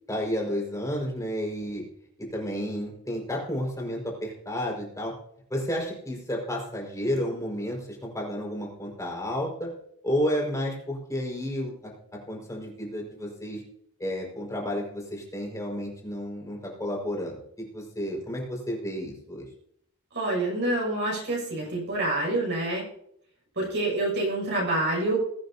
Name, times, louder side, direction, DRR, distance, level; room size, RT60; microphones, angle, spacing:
voice 1, 0.1-1.8 2.2-5.1 5.5-9.7 10.0-11.9 12.3-13.6 14.0-17.3 17.7-19.4, equal, 15° left, -1 dB, 5.0 m, -31 dB
voice 2, 20.1-22.8 23.6-25.2, right 2 dB, 55° right, -3 dB, 6.2 m, -27 dB
21.0 x 9.4 x 2.8 m, 0.70 s
head